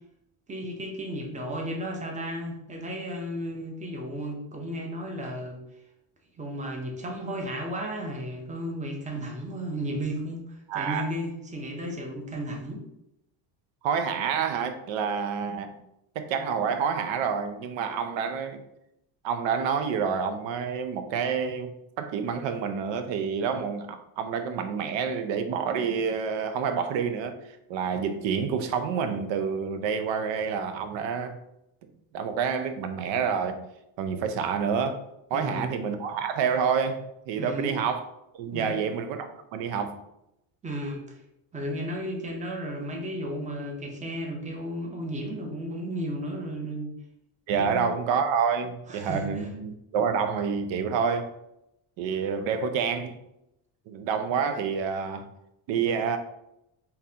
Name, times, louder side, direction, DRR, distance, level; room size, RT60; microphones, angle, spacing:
voice 1, 0.5-5.6 6.4-12.8 35.3-35.7 37.4-37.7 38.5-38.8 40.6-41.2 41.5-46.9 47.6-47.9 48.9-49.5, equal, 15° right, 1 dB, 0.7 m, -34 dB
voice 2, 10.7-11.1 13.8-15.8 16.2-18.6 19.2-27.4 27.7-31.4 32.1-33.6 34.0-35.0 35.3-38.0 38.4-40.0 47.5-51.3 52.0-53.2 53.9-55.3 55.7-56.2, right 6 dB, 65° right, 8 dB, 0.6 m, -28 dB
3.8 x 2.8 x 2.8 m, 0.83 s
cardioid pair, 105°, 48 cm